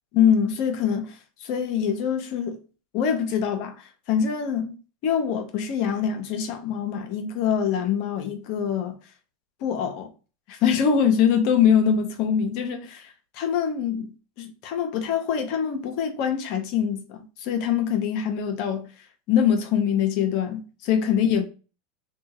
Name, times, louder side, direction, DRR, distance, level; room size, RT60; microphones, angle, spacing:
voice 1, 0.1-2.6 2.9-4.7 5.0-9.0 9.6-10.1 10.5-18.9 19.3-21.4, left 8 dB, 60° left, 0.7 m, -24 dB
2.6 x 2.3 x 2.9 m
hypercardioid pair, 100°, 0 cm